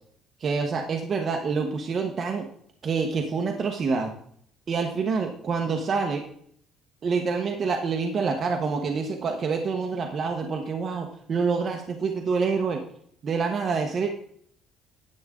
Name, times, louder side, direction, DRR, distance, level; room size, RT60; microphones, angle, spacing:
voice 1, 0.4-2.5 2.8-4.1 4.7-6.2 7.0-12.8 13.2-14.1, right 5 dB, 35° right, 2 dB, 0.9 m, -27 dB
10.5 x 7.8 x 3.6 m, 0.65 s
cardioid pair, 165°, 0 cm